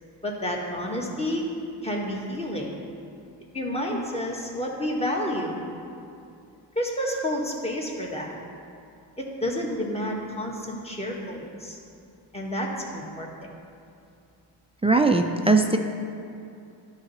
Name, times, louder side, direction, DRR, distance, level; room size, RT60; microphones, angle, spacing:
voice 1, 0.2-1.4 1.8-2.7 3.5-5.6 6.7-8.3 9.2-11.8 12.3-13.3, equal, 15° left, -2 dB, 1.5 m, -30 dB
voice 2, 14.8-15.8, right 3 dB, 15° right, 4 dB, 0.4 m, -19 dB
11.5 x 4.0 x 5.5 m, 2.5 s
cardioid pair, 75°, 46 cm